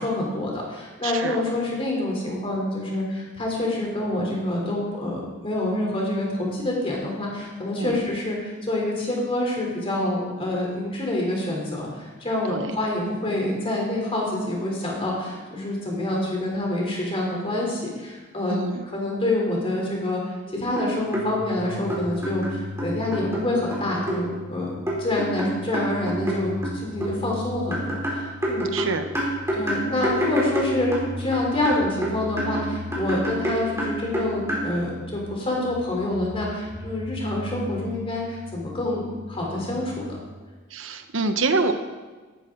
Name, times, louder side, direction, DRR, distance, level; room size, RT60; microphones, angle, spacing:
voice 1, 0.0-18.6 18.9-20.2 20.5-28.9 29.5-40.2, left 1 dB, 30° left, -2 dB, 3.5 m, -27 dB
voice 2, 1.0-1.4 7.8-8.0 12.5-12.7 18.5-18.8 28.7-29.1 40.7-41.7, right 3 dB, 70° right, 8 dB, 1.0 m, -26 dB
sound 1, 20.5-20.6 20.8-21.3 21.9-23.4 23.7-24.2 24.9-27.1 27.7-31.4 31.7-34.7, right 1 dB, 15° right, 3.6 m, -27 dB
sound 2, 21.0-40.2, left 2 dB, 50° right, 1.5 m, -39 dB
14.0 x 12.5 x 3.9 m, 1.3 s
head